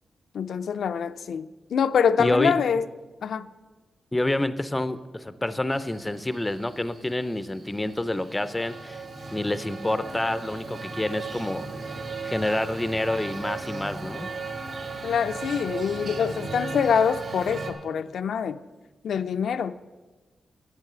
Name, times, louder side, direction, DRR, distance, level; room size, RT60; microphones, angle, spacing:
voice 1, 0.3-2.8 3.2-3.5 15.0-18.6 19.0-19.9, left 7 dB, 75° left, 0.4 m, -25 dB
voice 2, 2.2-2.5 4.1-9.0 9.3-11.9 12.2-14.3, left 1 dB, 10° left, 0.4 m, -28 dB
Male speech man speaking, 5.7-17.7, right 3 dB, 55° right, 1.6 m, -37 dB
10.5 x 8.0 x 6.7 m
wide cardioid pair, 170°, 0 cm